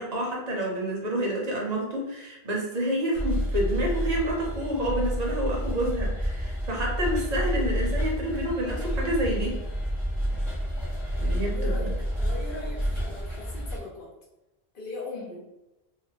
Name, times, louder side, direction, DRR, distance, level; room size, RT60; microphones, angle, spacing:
voice 1, 0.0-9.6 11.2-11.9, equal, 45° right, -2 dB, 0.7 m, -29 dB
sound 1, 3.1-13.8, equal, ahead, 0.5 m, -29 dB
voice 2, 11.4-14.1 14.7-15.5, left 2 dB, 60° left, -2 dB, 0.9 m, -39 dB
2.3 x 2.2 x 3.3 m, 0.97 s
omnidirectional pair, 1.1 m